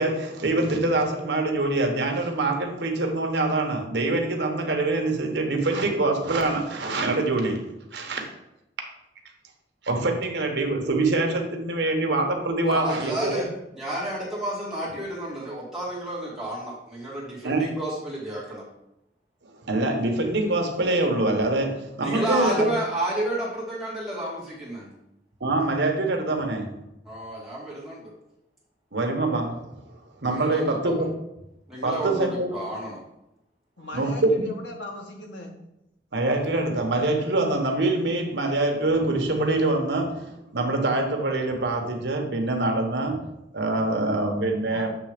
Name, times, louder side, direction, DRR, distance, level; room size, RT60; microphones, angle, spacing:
voice 1, 0.0-8.3 9.8-13.4 17.4-17.7 19.6-22.7 25.4-26.8 28.9-29.9 30.2-31.1 31.8-32.5 33.9-34.3 36.1-43.3 43.5-44.9, right 2 dB, 75° right, 3 dB, 1.1 m, -25 dB
voice 2, 12.7-18.6 22.0-24.9 27.1-28.1 30.3-30.9 31.7-33.0, right 1 dB, ahead, -7 dB, 2.1 m, -31 dB
voice 3, 33.8-35.5 44.6-44.9, left 1 dB, 90° left, 1 dB, 1.4 m, -38 dB
7.6 x 3.3 x 5.0 m, 0.86 s
head